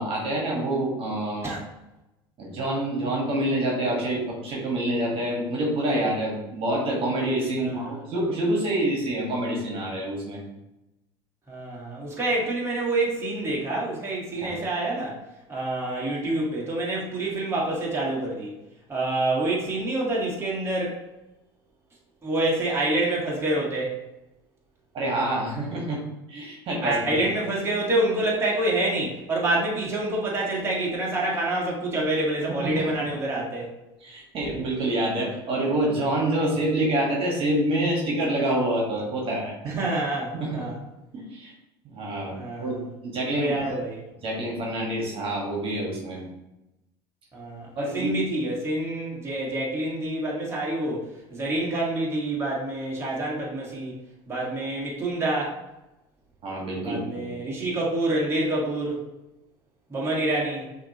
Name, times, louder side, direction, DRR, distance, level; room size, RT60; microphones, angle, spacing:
voice 1, 0.0-1.5 2.4-10.4 14.3-14.6 24.9-26.0 26.3-27.2 32.6-32.9 34.0-39.8 40.3-40.6 41.1-41.5 41.8-43.7 44.2-46.3 47.7-48.1 56.4-57.4, right 1 dB, 45° right, -2 dB, 1.5 m, -27 dB
voice 2, 7.6-7.9 11.5-15.2 15.5-18.5 18.9-21.0 22.2-23.9 26.8-33.7 39.6-40.8 42.3-42.8 43.3-44.0 47.3-54.0 54.3-55.6 56.8-59.0 59.9-60.7, right 2 dB, 20° right, -4 dB, 1.5 m, -27 dB
5.6 x 3.0 x 2.9 m, 0.95 s
hypercardioid pair, 80°, 13 cm